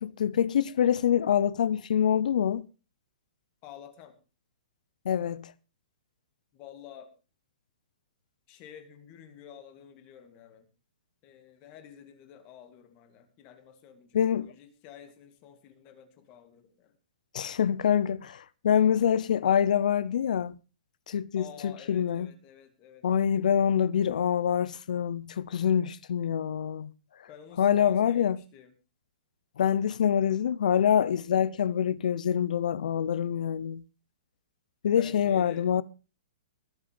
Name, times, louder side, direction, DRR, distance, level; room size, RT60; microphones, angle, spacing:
voice 1, 0.0-2.6 5.0-5.5 14.1-14.5 17.3-20.5 21.1-22.3 23.0-26.9 27.6-28.4 29.6-33.8 34.8-35.8, left 8 dB, 60° left, 0.8 m, -25 dB
voice 2, 3.6-4.2 6.5-7.1 8.5-10.7 11.2-16.9 21.3-23.1 27.3-28.7 35.0-35.7, left 9 dB, 20° left, 2.4 m, -50 dB
20.5 x 8.8 x 5.3 m
hypercardioid pair, 175°, 5 cm